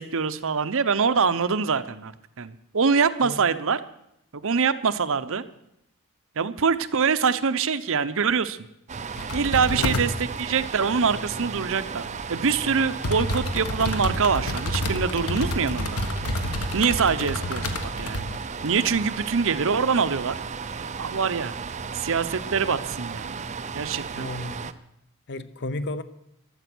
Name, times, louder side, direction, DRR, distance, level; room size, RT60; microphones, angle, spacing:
voice 1, 0.0-3.8 4.3-5.4 6.4-8.6 9.3-10.1 10.4-16.0 16.7-17.7 18.0-18.3 18.6-20.4 20.7-21.5 21.9-23.3 23.7-24.3, right 5 dB, 65° right, 0.8 m, -24 dB
sound 1, 8.9-24.7, right 5 dB, 30° right, 0.7 m, -35 dB
sound 2, 9.2-10.1 12.2-12.3 13.0-18.4 18.7-18.8, left 1 dB, 80° left, 1.6 m, -29 dB
voice 2, 9.7-10.1 17.2-17.3 24.1-24.7 25.3-26.0, left 2 dB, 50° left, 0.9 m, -33 dB
15.0 x 12.0 x 6.2 m
head